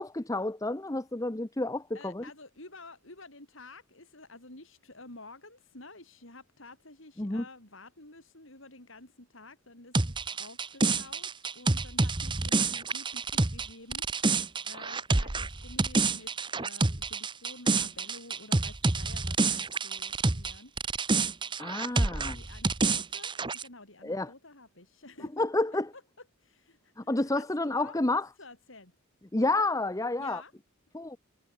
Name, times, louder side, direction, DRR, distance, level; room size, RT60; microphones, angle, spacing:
voice 1, 0.0-2.2 7.2-7.4 21.6-22.3 24.0-24.3 25.4-25.9 27.0-28.3 29.3-30.4 30.9-31.2, left 2 dB, 15° left, 0.8 m, -30 dB
voice 2, 1.9-14.4 14.6-20.7 21.7-25.4 25.9-26.0 26.4-28.9 30.2-30.5, left 2 dB, 65° left, 6.0 m, -51 dB
sound 1, 9.9-20.5 20.8-23.6, right 3 dB, 20° right, 0.9 m, -28 dB
head